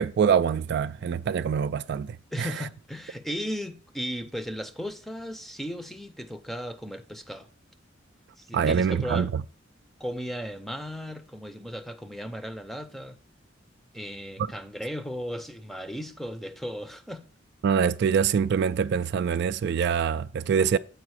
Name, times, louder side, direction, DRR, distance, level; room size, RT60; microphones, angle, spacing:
voice 1, 0.0-2.7 8.5-9.4 17.6-20.8, right 7 dB, 60° right, 0.3 m, -25 dB
voice 2, 2.3-7.5 8.4-9.3 10.0-13.2 13.9-17.3, equal, ahead, 0.6 m, -36 dB
8.1 x 4.8 x 4.7 m
head